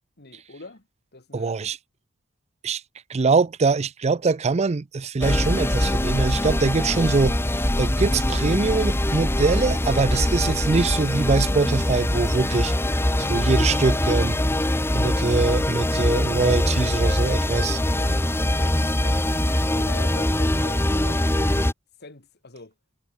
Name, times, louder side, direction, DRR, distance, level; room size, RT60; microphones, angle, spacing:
voice 1, 0.2-0.8 1.1-1.5 16.6-19.5 19.7-21.5 22.0-22.7, left 3 dB, 50° left, 2.7 m, -44 dB
voice 2, 1.3-1.8 2.6-2.8 3.1-7.4 7.8-12.7 13.3-14.4 14.9-17.8, right 4 dB, 30° right, 0.4 m, -23 dB
sound 1, 5.2-21.7, left 1 dB, 10° left, 1.1 m, -23 dB
head